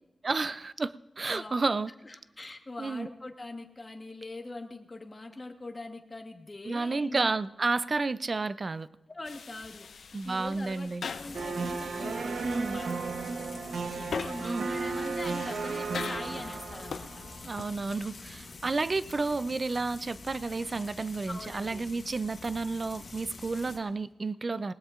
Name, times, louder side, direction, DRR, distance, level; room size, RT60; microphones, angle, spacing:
voice 1, 0.2-1.9 2.8-3.1 6.7-8.9 10.1-11.0 12.4-12.8 14.4-14.7 17.4-24.7, right 3 dB, 35° right, 15 dB, 0.4 m, -31 dB
voice 2, 1.3-1.6 2.0-7.3 9.1-13.5 13.9-17.2 21.3-21.8, left 2 dB, 25° left, 4 dB, 1.2 m, -43 dB
sound 1, 9.2-18.4, left 5 dB, 70° left, 0.6 m, -43 dB
Frying (food), 11.0-23.8, left 3 dB, 50° left, 1.4 m, -47 dB
sound 2, 11.3-17.6, right 4 dB, 85° right, 0.9 m, -34 dB
19.5 x 19.5 x 2.5 m, 0.98 s
wide cardioid pair, 155°, 0 cm